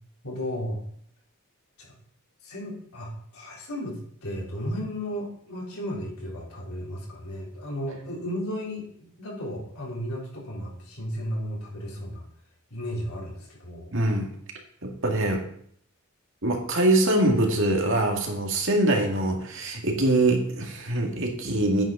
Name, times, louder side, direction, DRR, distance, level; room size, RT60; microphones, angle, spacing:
voice 1, 0.2-0.9 1.8-1.9 2.4-12.3 12.7-13.9, equal, 75° left, -3 dB, 3.5 m, -34 dB
voice 2, 13.9-14.3 14.8-15.4 16.4-21.8, right 1 dB, 60° right, 2 dB, 1.9 m, -23 dB
9.0 x 6.3 x 5.4 m, 0.64 s
head